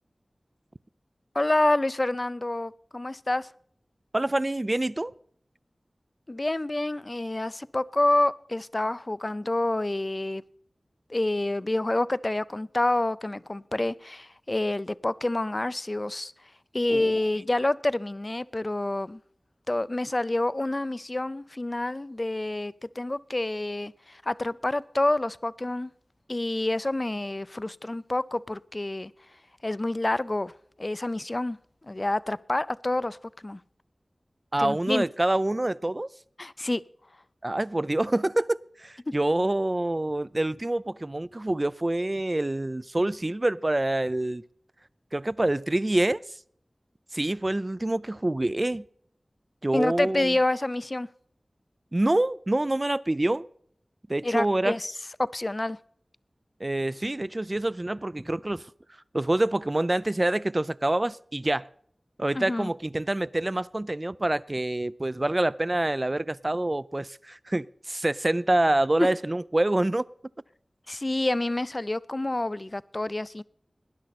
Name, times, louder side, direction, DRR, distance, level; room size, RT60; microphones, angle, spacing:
voice 1, 1.3-3.5 6.3-10.4 11.1-16.3 16.7-19.2 19.7-25.9 26.3-29.1 29.6-30.5 30.8-31.6 31.8-33.2 33.4-33.6 34.6-35.1 36.4-36.8 39.1-39.2 49.7-51.1 54.2-54.9 55.2-55.8 62.3-62.7 70.9-73.4, left 2 dB, 40° left, 0.5 m, -28 dB
voice 2, 4.1-5.1 16.9-17.1 34.5-36.1 37.4-44.4 45.1-46.2 47.1-48.8 49.6-50.3 51.9-53.5 54.1-54.7 56.6-58.6 59.1-61.7 62.2-70.1, right 1 dB, 35° right, 0.4 m, -26 dB
19.0 x 10.5 x 4.2 m
wide cardioid pair, 50°, 0 cm